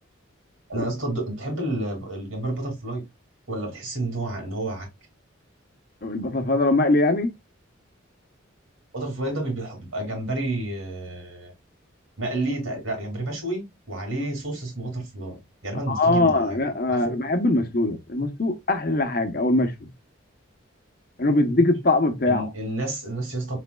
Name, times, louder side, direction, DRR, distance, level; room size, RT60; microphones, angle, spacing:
voice 1, 0.7-3.0 3.5-4.9 8.9-11.5 12.2-15.4 15.6-16.6 16.9-17.2 22.3-23.6, right 2 dB, 80° right, 2.5 m, -30 dB
voice 2, 6.0-7.3 15.9-19.7 21.2-22.5, left 2 dB, 45° left, 0.9 m, -22 dB
5.1 x 4.2 x 2.2 m
head